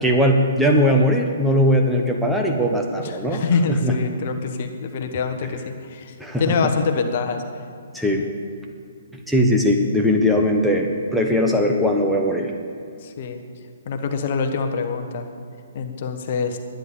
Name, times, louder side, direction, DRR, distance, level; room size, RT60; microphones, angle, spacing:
voice 1, 0.0-3.4 3.7-3.9 6.2-6.7 7.9-8.3 9.3-12.5, equal, ahead, 0 dB, 1.2 m, -19 dB
voice 2, 3.0-6.1 6.4-7.4 13.0-13.4 13.9-15.3 15.7-16.6, left 5 dB, 50° left, 5 dB, 1.3 m, -25 dB
11.0 x 10.5 x 7.0 m, 2.3 s
figure-of-eight pair, 130°, 0 cm